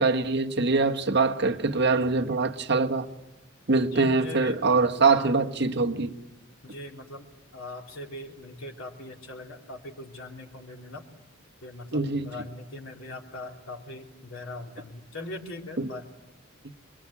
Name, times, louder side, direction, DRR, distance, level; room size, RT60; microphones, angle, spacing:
voice 1, 0.0-3.1 3.7-6.1 11.9-12.3 15.8-15.9, right 3 dB, 55° right, 1.5 m, -23 dB
voice 2, 3.8-5.3 6.6-7.3 7.5-11.1 11.6-16.1, left 2 dB, 85° left, 3.3 m, -40 dB
27.0 x 21.5 x 8.5 m
head